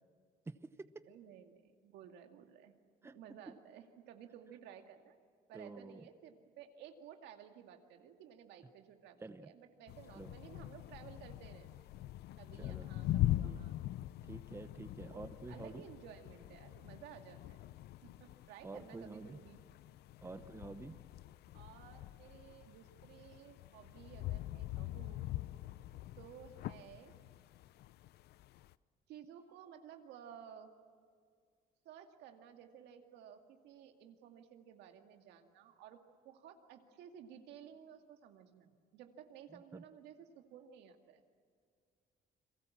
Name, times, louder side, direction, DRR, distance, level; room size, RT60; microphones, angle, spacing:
voice 1, 0.5-0.9 3.0-3.1 5.5-6.0 9.2-9.5 10.1-10.3 12.6-12.9 13.4-13.6 14.3-15.8 18.6-19.4 20.2-21.0 39.5-39.8, right 3 dB, 15° right, 11 dB, 0.9 m, -48 dB
voice 2, 1.1-2.7 3.0-5.2 5.5-11.7 12.4-13.7 15.0-17.6 18.0-19.6 20.2-20.3 21.5-25.3 26.2-27.2 29.1-30.7 31.8-41.2, right 9 dB, 85° right, 5 dB, 2.3 m, -55 dB
sound 1, 9.9-28.7, left 15 dB, 70° left, 0.6 m, -42 dB
30.0 x 22.5 x 7.3 m, 2.1 s
cardioid pair, 110°, 17 cm